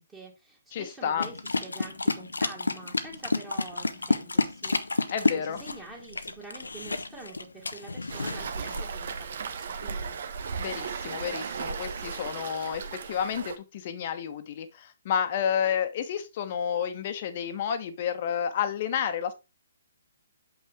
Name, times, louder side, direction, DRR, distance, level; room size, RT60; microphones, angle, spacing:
voice 1, 0.0-10.2, right 3 dB, 10° right, 2.3 m, -46 dB
voice 2, 0.7-1.3 5.1-5.6 10.6-19.3, left 8 dB, 40° left, 1.1 m, -30 dB
sound 1, 1.2-8.8, left 3 dB, 80° left, 0.8 m, -30 dB
Waves surf, 8.1-13.6, right 5 dB, 55° right, 1.0 m, -36 dB
6.9 x 5.6 x 3.6 m
figure-of-eight pair, 135°, 0 cm